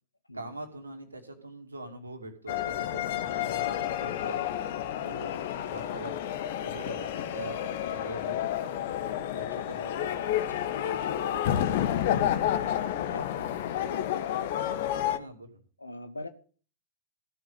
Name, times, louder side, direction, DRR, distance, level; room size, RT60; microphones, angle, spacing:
voice 1, 0.3-4.4 5.0-6.2 6.6-8.5 9.3-10.2 12.8-13.0 15.2-15.6, right 2 dB, 85° right, 2.5 m, -43 dB
sound 1, 2.5-15.2, left 10 dB, 55° left, 1.2 m, -30 dB
voice 2, 10.1-10.7 13.0-14.5 15.8-16.3, left 2 dB, 90° left, 1.4 m, -44 dB
15.5 x 6.2 x 8.0 m
figure-of-eight pair, 100°, 0 cm